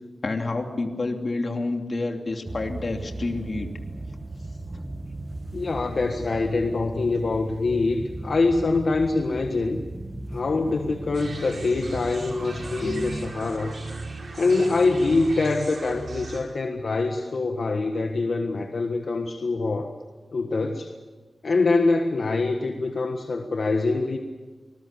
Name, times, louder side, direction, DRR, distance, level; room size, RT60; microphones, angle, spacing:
voice 1, 0.2-3.7, left 2 dB, 50° left, 3 dB, 2.9 m, -28 dB
sound 1, 2.4-13.3, right 2 dB, 20° right, 1.3 m, -37 dB
voice 2, 5.5-9.8 10.3-13.8 14.4-19.9 20.3-20.9 21.4-24.2, left 3 dB, 65° left, 4 dB, 1.5 m, -24 dB
sound 2, 11.1-16.4, right 2 dB, 60° right, 5.2 m, -36 dB
26.0 x 20.5 x 6.9 m, 1.3 s
wide cardioid pair, 95°, 0 cm